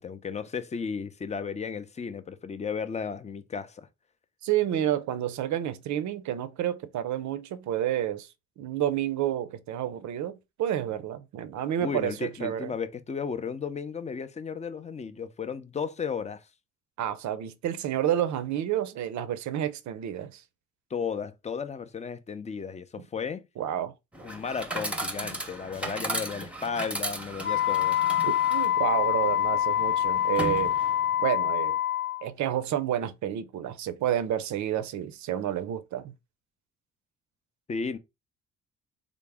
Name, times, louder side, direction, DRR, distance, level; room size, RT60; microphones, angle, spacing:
voice 1, 0.0-3.9 11.8-16.4 20.9-23.5 24.2-28.0 37.7-38.0, left 6 dB, 25° left, 0.4 m, -34 dB
voice 2, 4.4-8.3 8.6-12.7 17.0-20.4 23.6-23.9 28.2-30.7 31.2-31.8 32.2-36.1, right 11 dB, 70° right, 0.5 m, -30 dB
Chatter / Coin (dropping), 24.1-31.2, right 1 dB, 5° right, 0.7 m, -36 dB
Wind instrument woodwind instrument, 27.4-32.2, left 11 dB, 45° left, 0.8 m, -25 dB
3.4 x 2.0 x 3.3 m
cardioid pair, 90°, 30 cm